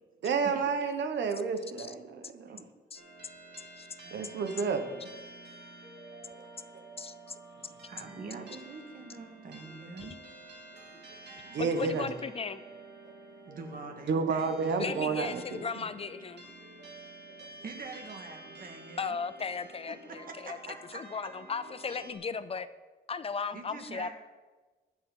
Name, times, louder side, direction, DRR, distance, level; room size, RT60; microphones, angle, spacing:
voice 1, 0.2-2.6 4.1-5.1 6.4-6.5 8.3-8.5 11.5-12.1 14.1-15.6, right 5 dB, 85° right, 7 dB, 1.2 m, -31 dB
sound 1, 2.9-22.1, right 2 dB, 70° right, 2.7 m, -50 dB
voice 2, 7.8-10.2 11.6-12.1 13.5-15.0 17.6-19.2 19.9-21.0 23.5-24.1, right 4 dB, 50° right, 4 dB, 1.8 m, -45 dB
voice 3, 11.6-12.6 14.8-16.4 19.0-20.6 20.9-22.7 23.1-24.1, left 5 dB, 35° left, 13 dB, 0.5 m, -36 dB
22.0 x 7.6 x 3.9 m, 1.3 s
wide cardioid pair, 170°, 18 cm